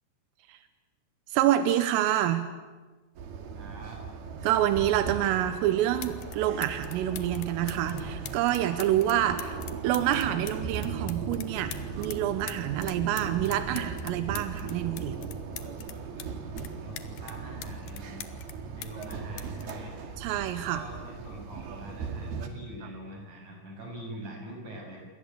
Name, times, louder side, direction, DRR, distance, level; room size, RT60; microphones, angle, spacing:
voice 1, 1.3-2.5 4.4-9.6 9.8-15.2 20.2-20.8, right 12 dB, 85° right, 10 dB, 3.7 m, -27 dB
sound 1, 3.2-22.5, right 5 dB, 55° right, 3.9 m, -38 dB
voice 2, 3.5-4.0 16.8-18.2 18.7-20.0 20.6-25.0, right 1 dB, 40° right, 1 dB, 8.6 m, -43 dB
sound 2, 6.0-6.4 6.6-12.2 12.5-16.3 16.6-18.6 18.8-20.7 21.6-21.8, left 12 dB, 70° left, 2.3 m, -43 dB
28.5 x 23.5 x 8.3 m, 1.3 s
omnidirectional pair, 5.8 m